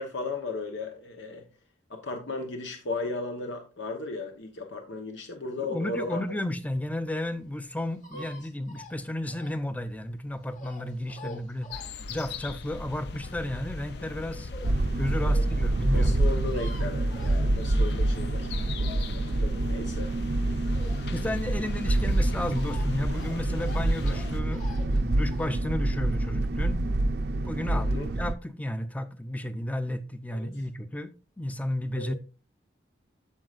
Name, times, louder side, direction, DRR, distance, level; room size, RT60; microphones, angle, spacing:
voice 1, 0.0-1.5 1.9-6.2 8.1-8.2 11.2-11.4 15.2-15.4 15.9-18.5 19.1-20.1 27.7-28.1 30.3-30.6 32.0-32.1, left 3 dB, 85° left, 1.0 m, -35 dB
voice 2, 5.6-11.7 12.1-14.5 15.0-16.2 21.1-26.8 27.4-31.1 31.4-32.1, left 1 dB, 10° left, 0.5 m, -33 dB
sound 1, 6.2-14.8 15.3-15.4 15.6-15.7 15.9-16.0 16.1-18.0 18.4-21.4 21.7-25.5, left 2 dB, 45° left, 1.6 m, -47 dB
sound 2, 11.7-24.4, left 3 dB, 65° left, 0.6 m, -41 dB
sound 3, 14.6-28.3, right 2 dB, 60° right, 0.6 m, -27 dB
14.0 x 4.8 x 2.5 m
head